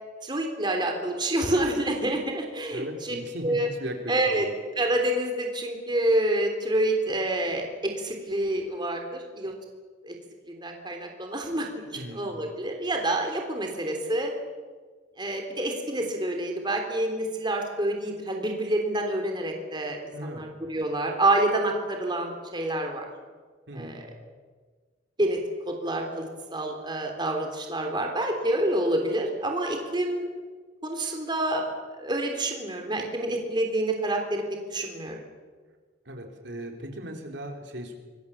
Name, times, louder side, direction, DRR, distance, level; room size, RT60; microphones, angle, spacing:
voice 1, 0.2-3.2 3.4-3.7 4.1-4.5 4.8-9.5 10.0-10.2 10.5-11.7 12.1-14.3 15.2-23.1 23.7-24.1 25.2-25.4 25.7-30.3 30.8-31.6 32.0-34.4 34.7-35.2, right 1 dB, 25° right, 3 dB, 3.5 m, -27 dB
voice 2, 2.7-4.5 9.4-9.5 11.9-12.3 20.1-20.5 23.7-24.0 36.1-37.9, right 1 dB, 70° right, 3 dB, 4.0 m, -37 dB
26.0 x 22.5 x 7.4 m, 1.5 s
head